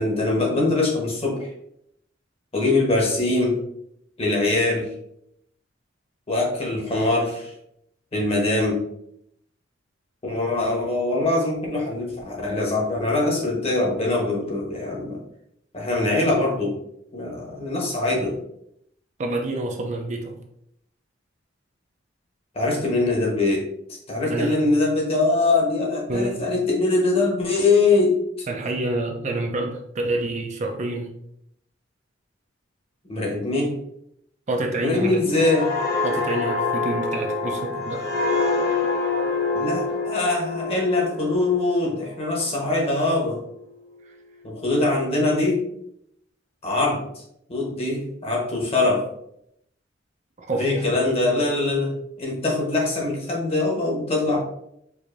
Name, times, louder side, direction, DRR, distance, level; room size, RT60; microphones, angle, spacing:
voice 1, 0.0-1.5 2.5-3.6 4.2-4.9 6.3-7.5 8.1-8.8 10.2-15.2 15.7-16.8 17.1-18.4 22.5-23.7 24.1-28.2 33.1-33.7 34.8-35.7 39.5-43.4 44.4-45.6 46.6-47.0 47.5-49.1 50.6-51.9 52.2-54.4, left 2 dB, 30° left, 0 dB, 1.0 m, -22 dB
voice 2, 19.2-20.4 24.2-24.6 26.1-26.4 28.5-31.1 34.5-35.2 36.0-38.1 44.1-44.2 50.4-50.9, right 2 dB, 40° right, 2 dB, 0.5 m, -28 dB
sound 1, 35.3-42.8 43.2-43.4, left 3 dB, 55° left, 1.0 m, -26 dB
4.7 x 2.7 x 2.5 m, 0.74 s
head